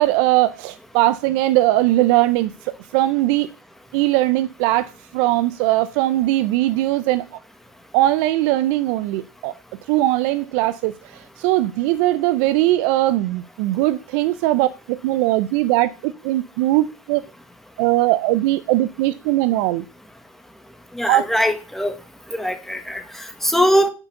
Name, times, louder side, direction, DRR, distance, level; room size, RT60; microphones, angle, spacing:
voice 1, 0.0-3.5 3.9-7.3 7.9-9.6 9.9-17.2 17.8-19.8 21.1-21.2, right 16 dB, 50° right, 0.6 m, -20 dB
voice 2, 20.9-21.9 22.3-23.0 23.4-23.9, equal, ahead, 1.4 m, -20 dB
6.7 x 4.8 x 6.5 m
supercardioid pair, 135°, 19 cm